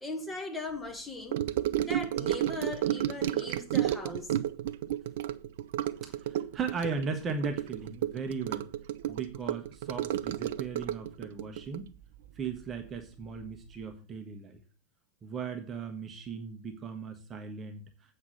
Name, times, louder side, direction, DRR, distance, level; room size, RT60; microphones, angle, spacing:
voice 1, 0.0-1.4 1.8-4.3, left 2 dB, 10° left, 1.9 m, -39 dB
Gurgling / Sink (filling or washing) / Trickle dribble, 1.3-13.0 13.2-13.6 13.8-13.9, right 12 dB, 55° right, 0.5 m, -32 dB
voice 2, 6.0-8.7 9.1-11.9 12.4-14.6 15.2-17.8, right 5 dB, 25° right, 1.2 m, -37 dB
8.5 x 5.5 x 6.7 m
figure-of-eight pair, 90°, 0 cm